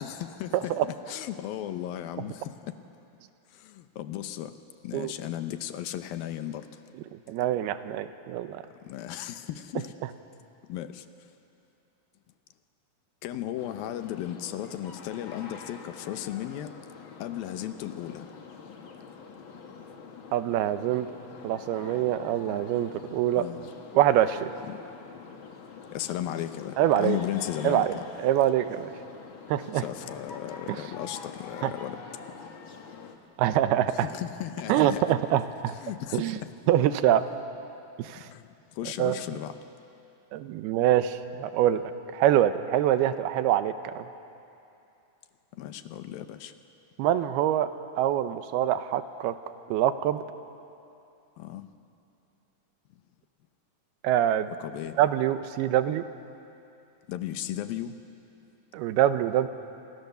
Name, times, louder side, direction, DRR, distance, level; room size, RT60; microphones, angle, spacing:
voice 1, 0.0-2.7 3.5-4.6 4.8-6.8 8.8-9.9 10.7-11.1 13.2-16.7 17.2-18.3 23.3-23.7 24.7-24.8 25.9-28.0 29.7-32.0 32.2-32.5 33.9-35.2 35.7-36.5 38.1-39.6 45.5-46.5 51.4-51.7 54.6-55.0 57.1-58.0, left 12 dB, 75° left, 9 dB, 2.5 m, -35 dB
voice 2, 7.3-8.6 20.3-21.1 21.4-23.5 23.9-24.5 26.8-27.2 27.6-27.9 28.2-28.9 29.5-29.8 30.7-30.8 31.6-31.7 33.4-34.1 34.7-35.8 36.1-36.4 36.7-37.3 38.0-38.3 39.0-39.2 40.3-44.1 47.0-47.7 48.0-49.3 49.7-50.2 54.0-54.5 55.0-56.0 58.7-59.5, right 12 dB, 80° right, 11 dB, 2.8 m, -24 dB
sound 1, 13.6-33.2, left 5 dB, 50° left, 1.5 m, -45 dB
28.5 x 25.5 x 6.9 m, 2.8 s
omnidirectional pair, 4.5 m